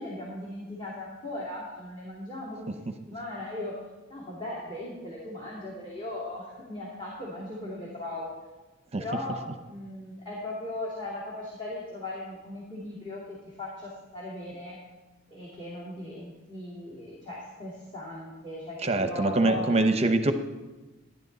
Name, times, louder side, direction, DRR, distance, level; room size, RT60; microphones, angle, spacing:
voice 1, 0.0-2.8 3.1-3.8 4.1-8.3 9.0-13.2 13.6-14.8 15.3-19.8, left 2 dB, 25° left, -5 dB, 2.6 m, -38 dB
voice 2, 18.8-20.3, right 2 dB, 30° right, 8 dB, 0.7 m, -24 dB
15.0 x 10.5 x 4.0 m, 1.1 s
head